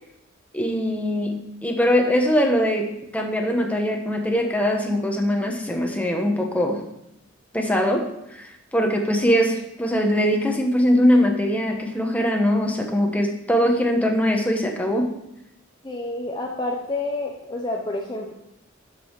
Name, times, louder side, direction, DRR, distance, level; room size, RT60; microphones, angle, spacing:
voice 1, 0.5-6.8 7.5-8.1 8.4-15.2, equal, 5° left, 2 dB, 1.1 m, -22 dB
voice 2, 15.8-18.3, left 2 dB, 25° left, 0 dB, 0.8 m, -29 dB
12.0 x 5.6 x 4.7 m, 0.83 s
head